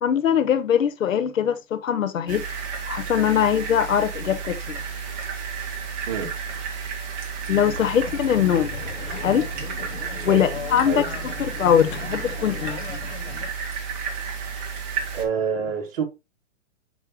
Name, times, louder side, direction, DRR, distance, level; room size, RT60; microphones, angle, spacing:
voice 1, 0.0-2.4 2.8-4.8 7.5-8.8 9.2-9.5 10.2-11.0 11.4-12.8, left 9 dB, 80° left, 1.1 m, -22 dB
sound 1, 2.3-15.2, right 6 dB, 20° right, 1.4 m, -32 dB
sound 2, 7.7-13.5, left 8 dB, 55° left, 1.3 m, -38 dB
voice 2, 15.1-16.0, right 6 dB, 45° right, 2.4 m, -26 dB
6.4 x 5.4 x 3.1 m
hypercardioid pair, 160°, 39 cm